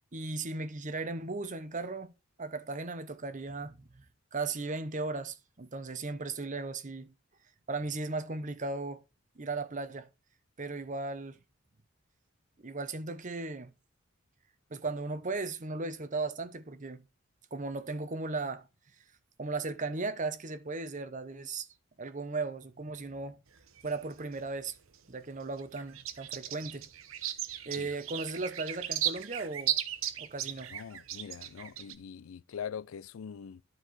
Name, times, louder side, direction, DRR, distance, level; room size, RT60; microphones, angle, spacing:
voice 1, 0.1-2.1 2.4-4.0 4.3-7.1 7.7-9.0 9.4-10.1 10.6-11.4 12.6-13.7 14.7-17.1 17.5-18.6 19.4-21.7 22.0-23.4 23.8-24.8 25.1-26.9 27.6-29.8 30.2-30.7, right 3 dB, 40° right, 0.9 m, -36 dB
sound 1, 23.5-25.0 25.4-31.9, right 12 dB, 85° right, 0.9 m, -36 dB
voice 2, 30.7-33.6, left 7 dB, 85° left, 0.4 m, -42 dB
12.0 x 4.7 x 4.2 m
head